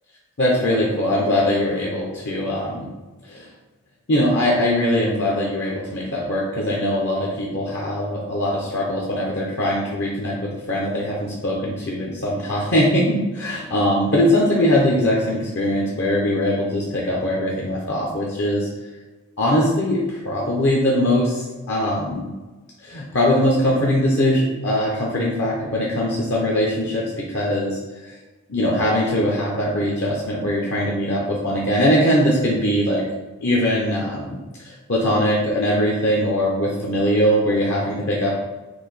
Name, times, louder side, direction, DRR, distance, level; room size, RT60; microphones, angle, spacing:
voice 1, 0.4-2.9 3.3-3.5 4.1-18.7 19.4-22.3 22.8-27.8 28.0-28.1 28.5-33.0 33.4-34.4 34.6-38.3, left 1 dB, 50° left, -4 dB, 0.7 m, -21 dB
4.7 x 2.7 x 4.0 m, 1.2 s
head